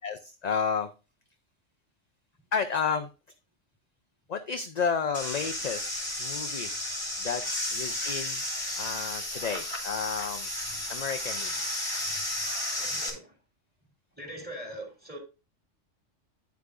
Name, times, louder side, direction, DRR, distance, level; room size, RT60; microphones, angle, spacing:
voice 1, 0.0-0.9 2.5-3.1 4.3-6.8 7.2-7.4 7.7-8.4 8.7-10.5 10.9-11.5, left 6 dB, 45° left, 0.5 m, -31 dB
sound 1, 5.1-13.1, left 1 dB, 25° right, 3.2 m, -33 dB
voice 2, 12.8-13.2 14.2-15.2, right 1 dB, 5° right, 3.2 m, -41 dB
9.5 x 8.1 x 2.5 m
omnidirectional pair, 1.3 m